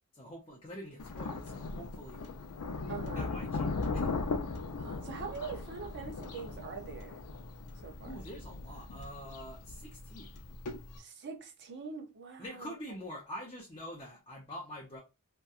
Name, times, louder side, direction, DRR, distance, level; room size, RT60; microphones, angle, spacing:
voice 1, 0.1-2.3 3.1-4.1 8.1-10.3 12.4-15.0, equal, 25° left, 0.5 m, -45 dB
Thunder, 1.0-11.0, left 3 dB, 80° left, 0.5 m, -38 dB
voice 2, 2.9-3.3 4.8-7.2 7.8-8.2 11.0-12.7, right 5 dB, 50° right, 0.5 m, -43 dB
2.7 x 2.2 x 2.3 m
head